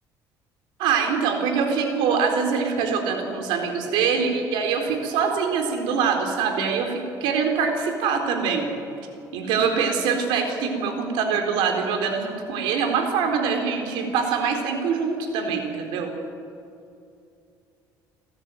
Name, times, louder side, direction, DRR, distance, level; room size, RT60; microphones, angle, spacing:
voice 1, 0.8-8.7 9.3-16.1, right 6 dB, 85° right, 4 dB, 4.1 m, -24 dB
28.5 x 14.0 x 9.3 m, 2.5 s
cardioid pair, 135°, 8 cm